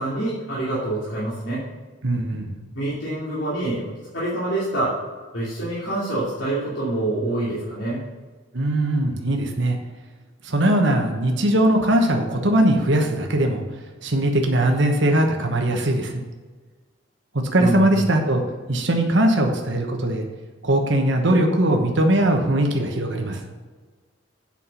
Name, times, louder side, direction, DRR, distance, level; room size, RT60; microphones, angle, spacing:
voice 1, 0.0-1.6 2.7-5.0 5.3-8.0 17.6-18.0, right 1 dB, 70° left, -9 dB, 2.7 m, -26 dB
voice 2, 2.0-2.5 8.5-9.8 10.4-13.6 14.0-16.1 17.5-18.4 18.7-20.2 20.6-23.4, right 1 dB, 65° right, 3 dB, 1.2 m, -20 dB
8.6 x 5.9 x 5.7 m, 1.4 s
head